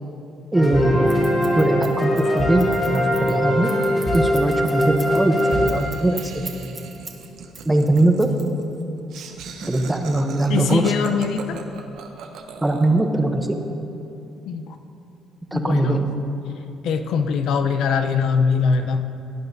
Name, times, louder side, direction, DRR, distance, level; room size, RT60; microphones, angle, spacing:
sound 1, 0.5-6.5, left 1 dB, 30° left, 2.4 m, -22 dB
voice 1, 0.5-1.1 1.6-3.7 4.1-6.8 7.6-8.3 9.6-10.8 12.6-13.5 15.5-16.1, right 2 dB, 10° right, 4 dB, 0.8 m, -21 dB
Scissors, 1.1-7.3 7.5-8.8, right 4 dB, 30° right, 1.1 m, -39 dB
Laughter, 5.4-13.0, right 6 dB, 75° right, 0.9 m, -39 dB
voice 2, 10.5-11.6 14.5-14.6 15.5-16.0 16.8-19.0, left 6 dB, 75° left, 7 dB, 0.6 m, -22 dB
17.5 x 9.2 x 2.7 m, 2.9 s
cardioid pair, 125°, 0 cm